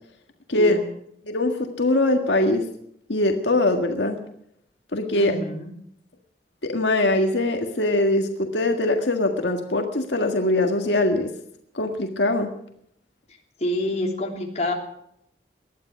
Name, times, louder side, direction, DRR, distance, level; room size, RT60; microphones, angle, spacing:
voice 1, 1.3-2.6 3.1-4.2 4.9-5.3 6.6-11.3 11.7-12.5, left 2 dB, 85° left, 4 dB, 1.8 m, -22 dB
voice 2, 5.1-5.7 13.6-14.7, left 1 dB, 40° left, 1 dB, 3.2 m, -27 dB
19.5 x 12.0 x 6.0 m, 0.72 s
head